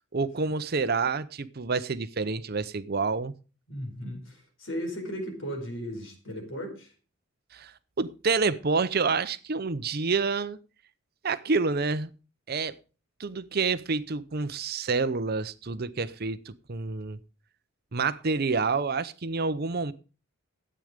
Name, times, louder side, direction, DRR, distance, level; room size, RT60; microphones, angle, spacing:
voice 1, 0.1-3.3 7.5-7.7 8.0-10.6 11.2-12.1 12.5-12.7 13.2-16.4 16.7-17.2 17.9-19.9, right 4 dB, 45° right, 14 dB, 0.7 m, -28 dB
voice 2, 3.7-6.9, equal, 60° left, 5 dB, 4.6 m, -36 dB
12.5 x 8.8 x 5.1 m, 0.35 s
head